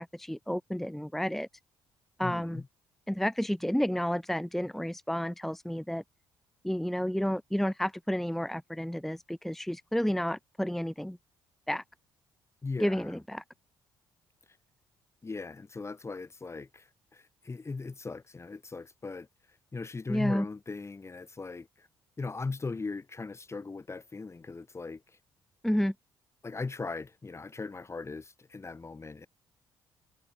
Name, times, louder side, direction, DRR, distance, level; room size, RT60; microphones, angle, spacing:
voice 1, 0.0-1.5 2.2-2.6 3.1-6.0 6.6-11.2 11.7-11.8 12.8-13.4 20.1-20.5 25.6-25.9, equal, 5° left, 0.8 m, -31 dB
voice 2, 2.2-2.7 12.6-13.2 15.2-19.3 19.7-21.9 22.2-25.0 26.4-29.3, left 4 dB, 30° left, 1.5 m, -39 dB
supercardioid pair, 55°, 10 cm